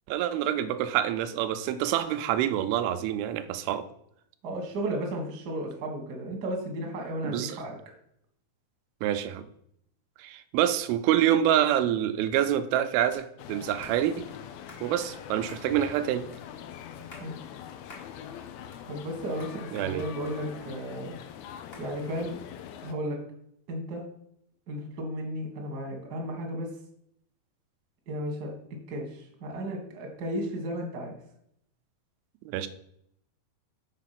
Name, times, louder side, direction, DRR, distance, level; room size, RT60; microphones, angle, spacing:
voice 1, 0.1-3.8 7.2-7.6 9.0-9.4 10.2-14.3 14.8-16.2 19.7-20.0 32.5-32.7, right 11 dB, 90° right, 10 dB, 2.5 m, -26 dB
voice 2, 4.4-7.7 17.2-17.3 18.9-21.2 21.8-22.3 22.8-23.2 23.7-24.0 24.7-26.7 28.1-31.1, right 1 dB, 50° right, 1 dB, 1.2 m, -34 dB
sound 1, 13.1-13.3 13.8-14.0 14.7-14.9 15.5-15.7 16.3-16.4 16.9-17.3 17.9-18.1 18.5-19.1 19.4-19.5 20.3-20.8 21.7-21.9, left 2 dB, 40° left, 0.8 m, -49 dB
sound 2, 13.4-22.9, left 9 dB, 85° left, 2.5 m, -43 dB
6.6 x 4.9 x 5.8 m, 0.72 s
omnidirectional pair, 4.2 m